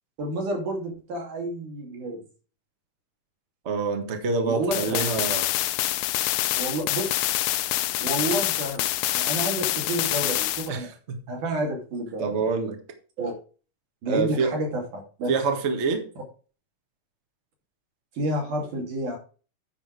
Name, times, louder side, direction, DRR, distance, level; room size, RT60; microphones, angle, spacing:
voice 1, 0.2-2.2 4.5-5.1 6.5-7.1 8.0-8.9 9.1-10.9 11.3-12.5 13.2-13.3 14.0-15.3 18.1-19.2, right 1 dB, 70° right, 0 dB, 4.2 m, -30 dB
voice 2, 3.6-5.5 10.7-11.2 12.2-12.8 14.1-14.5 15.3-16.1, right 4 dB, 50° right, 5 dB, 0.8 m, -26 dB
sound 1, 4.7-10.7, left 15 dB, 90° left, 2.2 m, -26 dB
9.6 x 6.3 x 4.7 m, 0.38 s
omnidirectional pair, 3.8 m